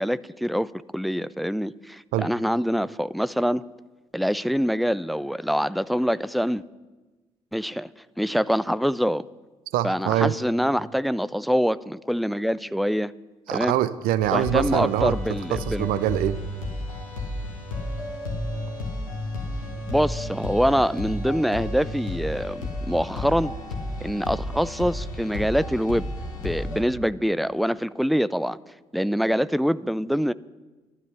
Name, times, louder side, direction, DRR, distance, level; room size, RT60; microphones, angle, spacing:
voice 1, 0.0-3.6 4.1-6.6 7.5-7.9 8.2-9.2 9.8-13.1 13.5-13.7 14.3-15.9 19.9-23.5 24.0-26.1 26.4-28.6 28.9-30.3, equal, ahead, 18 dB, 0.3 m, -25 dB
voice 2, 9.7-10.3 13.5-15.2 15.5-16.4, right 13 dB, 60° right, 15 dB, 0.6 m, -24 dB
sound 1, 14.2-26.8, left 1 dB, 80° left, 1.8 m, -32 dB
13.0 x 11.5 x 5.9 m, 1.2 s
figure-of-eight pair, 45°, 17 cm